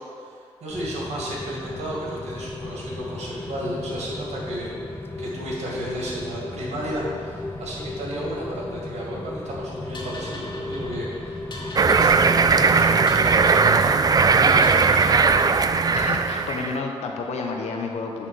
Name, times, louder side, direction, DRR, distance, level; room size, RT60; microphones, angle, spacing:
voice 1, 0.6-4.7 5.2-14.0 14.3-14.8, right 1 dB, 80° right, -4 dB, 2.0 m, -33 dB
Rain, 0.7-13.8, left 2 dB, 20° left, 0.7 m, -35 dB
sound 1, 9.9-16.2, left 2 dB, 45° left, 2.0 m, -40 dB
sound 2, 11.8-16.8, right 5 dB, 35° right, 0.4 m, -18 dB
voice 2, 15.9-18.3, left 4 dB, 80° left, 2 dB, 1.0 m, -30 dB
8.7 x 3.7 x 6.5 m, 2.3 s
cardioid pair, 65°, 11 cm